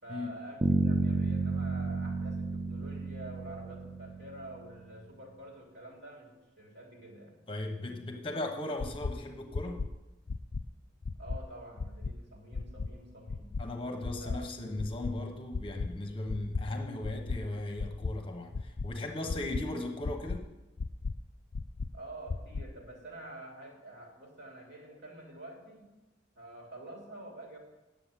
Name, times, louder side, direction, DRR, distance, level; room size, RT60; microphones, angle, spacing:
voice 1, 0.0-7.3 11.2-13.5 14.1-14.5 21.9-25.8 26.3-27.6, right 1 dB, 55° right, -2 dB, 3.2 m, -48 dB
Bass guitar, 0.6-4.6, right 3 dB, 25° right, 0.4 m, -31 dB
voice 2, 7.5-9.8 13.6-20.5, left 2 dB, 30° left, 3 dB, 1.0 m, -37 dB
sound 1, 8.8-9.1 9.5-9.9 10.3-10.6 11.0-11.4 11.8-12.1 12.5-12.9 13.3-13.6 14.0-14.4 14.8-15.1 15.5-15.9 16.3-16.6 17.0-17.4 17.8-18.1 18.5-18.9 19.3-19.6 20.0-20.4 20.8-21.1 21.5-21.9 22.3-22.6, left 4 dB, 45° left, 0.4 m, -34 dB
9.8 x 7.4 x 7.5 m, 1.0 s
head